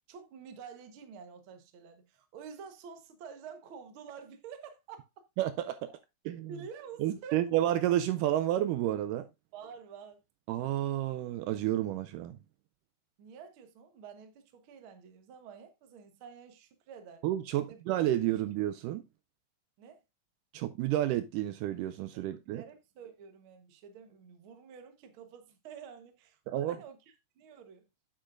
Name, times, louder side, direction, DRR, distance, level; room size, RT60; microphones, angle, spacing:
voice 1, 0.1-5.2 5.9-6.0 6.5-7.5 9.5-10.2 13.2-17.2 17.5-17.8 19.8-20.0 22.1-27.0 27.3-27.8, right 6 dB, 60° right, 1.4 m, -49 dB
voice 2, 5.4-5.9 6.3-6.5 7.0-9.3 10.5-12.4 17.2-19.0 20.5-22.6 26.5-26.8, right 13 dB, 80° right, 2.0 m, -30 dB
8.5 x 7.6 x 2.5 m
omnidirectional pair, 3.9 m